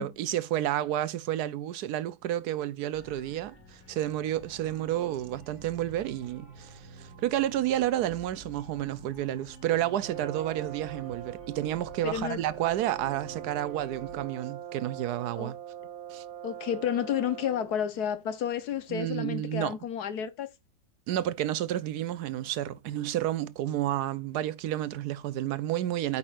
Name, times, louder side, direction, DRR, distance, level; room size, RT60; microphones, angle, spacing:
voice 1, 0.0-15.6 16.1-16.2 18.9-19.8 21.1-26.2, right 12 dB, 85° right, 1.2 m, -30 dB
sound 1, 2.9-14.3, right 2 dB, 45° left, 2.8 m, -50 dB
Brass instrument, 10.0-17.8, right 10 dB, 65° right, 0.7 m, -42 dB
voice 2, 12.0-12.4 15.4-15.5 16.4-20.5, left 9 dB, 75° left, 1.5 m, -31 dB
8.6 x 5.5 x 2.5 m
omnidirectional pair, 1.7 m